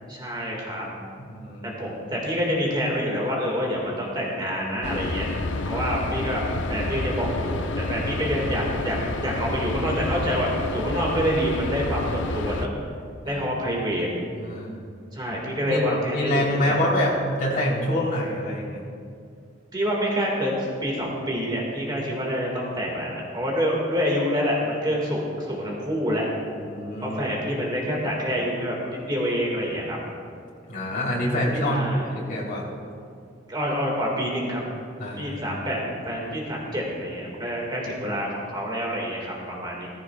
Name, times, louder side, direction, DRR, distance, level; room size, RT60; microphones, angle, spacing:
voice 1, 0.1-0.9 1.6-5.3 5.6-6.4 6.7-12.7 13.3-14.1 15.1-16.8 19.7-26.3 27.0-30.0 31.6-32.1 33.5-34.6 35.2-39.9, equal, 25° right, -2 dB, 1.8 m, -27 dB
voice 2, 1.2-1.8 13.2-13.5 14.3-14.8 15.7-15.8 16.1-18.8 26.5-27.2 30.7-31.9 32.1-32.7 35.0-35.4, left 1 dB, 50° left, -4 dB, 3.2 m, -26 dB
sound 1, 4.8-12.7, left 2 dB, 75° left, 0.7 m, -29 dB
16.5 x 15.0 x 2.3 m, 2.3 s
head